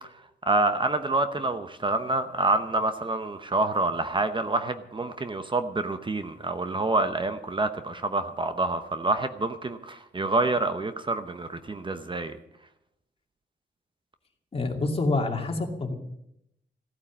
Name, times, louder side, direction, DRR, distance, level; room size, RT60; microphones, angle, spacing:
voice 1, 0.5-12.3, right 2 dB, 25° right, 9 dB, 0.9 m, -27 dB
voice 2, 14.5-15.9, left 2 dB, 30° left, 2 dB, 2.5 m, -27 dB
15.5 x 9.5 x 7.4 m, 0.80 s
wide cardioid pair, 110°, 18 cm